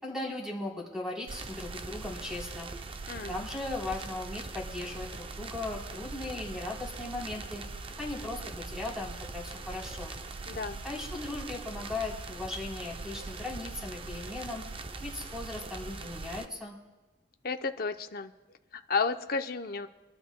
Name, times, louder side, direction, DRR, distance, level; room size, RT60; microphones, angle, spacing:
voice 1, 0.0-2.7 3.3-7.6 8.0-10.1 10.8-14.6 15.0-16.8, left 2 dB, 5° right, -3 dB, 3.5 m, -38 dB
sound 1, 1.3-16.5, right 3 dB, 30° right, 0.5 m, -41 dB
voice 2, 3.1-3.4 10.5-10.8 17.4-18.3 18.7-19.9, left 4 dB, 50° left, 8 dB, 0.6 m, -32 dB
26.0 x 12.0 x 2.2 m, 1.2 s
head